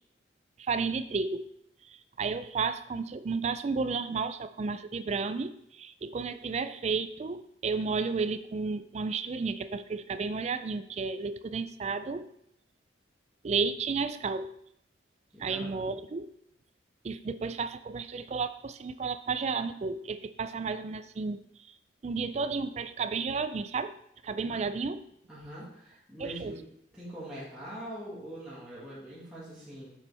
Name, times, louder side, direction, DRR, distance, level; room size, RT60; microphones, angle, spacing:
voice 1, 0.7-1.5 2.2-5.5 5.8-12.3 13.4-14.5 15.4-16.3 17.0-21.4 22.0-23.9 24.2-25.0 26.2-26.6, right 4 dB, 35° right, 12 dB, 0.3 m, -32 dB
voice 2, 15.3-15.9 24.5-24.7 25.3-26.6 26.9-29.9, right 1 dB, 5° right, -10 dB, 1.8 m, -43 dB
7.0 x 6.1 x 3.3 m, 0.72 s
head